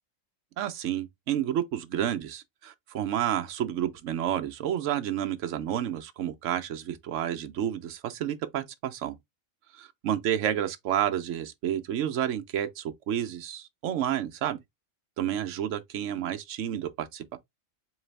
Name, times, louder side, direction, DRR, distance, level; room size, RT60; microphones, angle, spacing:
voice 1, 0.6-9.2 9.8-14.6 15.2-17.4, right 10 dB, 70° right, 1.0 m, -30 dB
4.0 x 3.2 x 3.2 m
omnidirectional pair, 1.4 m